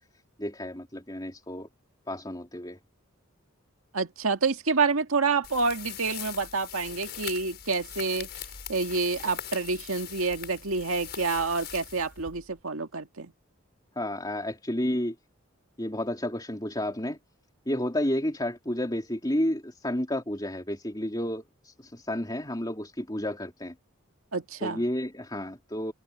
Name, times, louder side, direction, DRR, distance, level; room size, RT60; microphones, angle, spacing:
voice 1, 0.4-1.7 2.1-2.8 13.9-15.1 15.8-17.2 17.7-23.7 24.6-25.9, left 1 dB, 20° left, 3.4 m, -31 dB
voice 2, 3.9-8.3 8.7-13.3 24.3-24.8, right 4 dB, 85° right, 1.9 m, -28 dB
sound 1, 5.4-12.6, left 9 dB, 50° left, 6.3 m, -41 dB
head